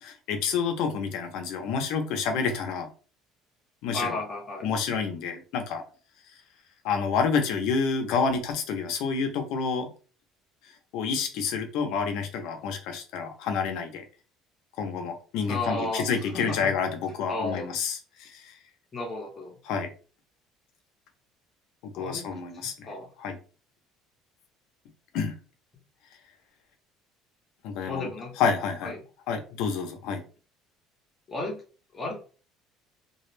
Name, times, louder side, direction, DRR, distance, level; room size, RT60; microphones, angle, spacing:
voice 1, 0.0-2.9 3.8-4.2 4.6-5.8 6.8-9.9 10.9-14.0 14.8-18.5 19.6-19.9 21.8-22.9 23.2-23.4 25.1-25.4 27.6-28.1 28.4-28.9 29.3-30.2, left 5 dB, 70° left, 6 dB, 0.6 m, -29 dB
voice 2, 3.9-4.7 15.5-16.1 16.3-16.7 17.3-17.7 18.9-19.5 21.9-22.3 22.6-23.1 27.9-28.4 28.8-28.9 31.3-31.6 31.9-32.2, left 2 dB, 25° left, 0 dB, 0.7 m, -33 dB
2.3 x 2.0 x 3.2 m, 0.37 s
cardioid pair, 145°, 0 cm